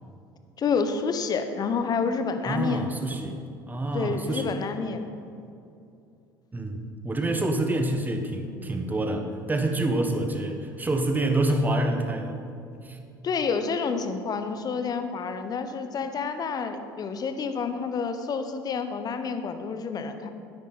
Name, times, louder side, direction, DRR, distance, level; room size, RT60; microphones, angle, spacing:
voice 1, 0.6-2.9 3.9-5.1 13.2-20.3, left 5 dB, 35° left, 8 dB, 1.0 m, -29 dB
voice 2, 2.4-3.4 3.7-4.5 6.5-12.4 12.8-13.0, right 2 dB, 15° right, 5 dB, 1.4 m, -27 dB
12.5 x 10.0 x 4.2 m, 2.6 s
figure-of-eight pair, 65°, 11 cm